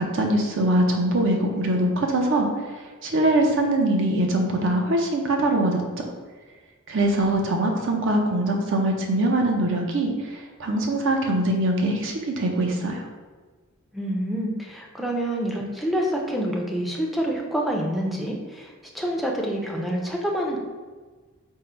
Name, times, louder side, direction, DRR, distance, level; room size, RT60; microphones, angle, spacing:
voice 1, 0.0-5.8 6.9-13.1, right 1 dB, 65° right, 2 dB, 0.6 m, -23 dB
voice 2, 13.9-20.6, equal, ahead, -1 dB, 0.4 m, -27 dB
3.7 x 2.0 x 4.3 m, 1.4 s
head